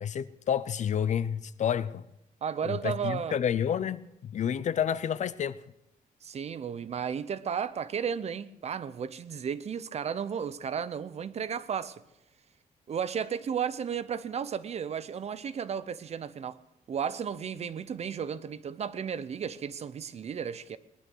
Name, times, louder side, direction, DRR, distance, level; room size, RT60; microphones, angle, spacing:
voice 1, 0.0-2.0 2.6-5.6, left 8 dB, 50° left, 0.5 m, -30 dB
voice 2, 2.4-3.4 6.2-12.0 12.9-16.6 16.9-20.8, right 7 dB, 45° right, 0.6 m, -34 dB
19.5 x 11.5 x 6.2 m
wide cardioid pair, 170°, 16 cm